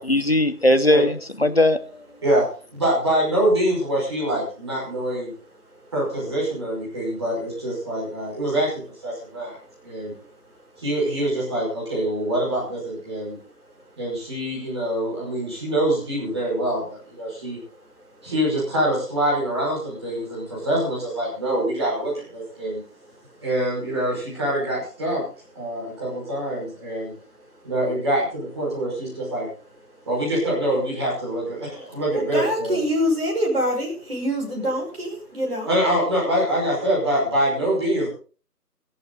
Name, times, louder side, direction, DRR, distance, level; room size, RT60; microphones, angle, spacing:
voice 1, 0.0-2.0, left 1 dB, 40° left, 0.9 m, -19 dB
voice 2, 2.7-5.3 5.9-8.7 9.0-9.6 9.8-10.1 10.8-13.4 14.0-17.6 18.2-22.8 23.4-25.2 25.5-27.1 27.6-29.5 30.1-32.8 35.7-38.1, right 1 dB, 15° right, 5.7 m, -24 dB
voice 3, 32.1-35.7, equal, 35° right, 5.7 m, -25 dB
17.0 x 14.0 x 4.0 m
figure-of-eight pair, 170°, 48 cm